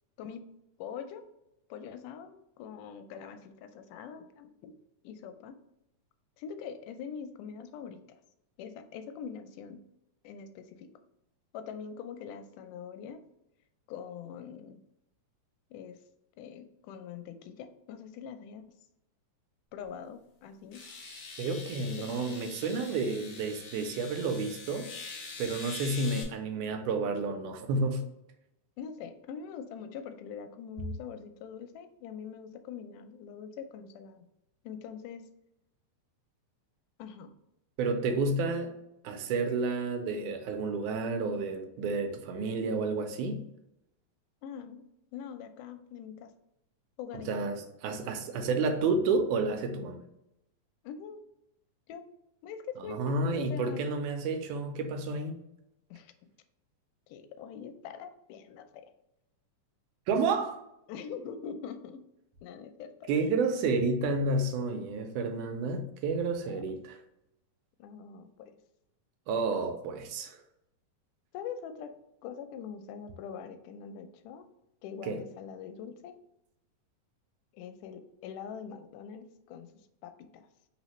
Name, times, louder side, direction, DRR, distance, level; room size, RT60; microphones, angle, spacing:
voice 1, 0.8-1.2 1.7-4.8 5.0-5.6 6.4-8.2 8.6-9.8 10.2-10.9 11.5-13.2 13.9-14.8 15.7-16.0 16.4-18.6 19.7-20.8 22.0-22.2 28.8-34.3 34.6-35.2 37.0-37.3 44.4-44.9 45.1-46.3 47.0-47.5 50.8-51.2 51.9-52.1 52.4-53.9 55.9-56.1 57.1-58.9 60.9-62.1 62.4-63.3 66.5-66.6 67.8-68.5 71.3-71.9 72.2-74.5 74.8-76.1 77.5-79.7 80.0-80.5, left 7 dB, 90° left, 2.1 m, -43 dB
sound 1, 19.8-19.9 20.7-26.2, left 4 dB, 60° left, 1.6 m, -44 dB
voice 2, 21.4-24.9 25.4-28.0 37.8-38.8 39.0-43.4 47.3-50.0 52.9-55.4 60.1-60.6 63.1-67.0 69.3-70.4 75.0-75.2, right 3 dB, 85° right, 2.0 m, -30 dB
4.1 x 4.0 x 3.0 m
omnidirectional pair, 3.6 m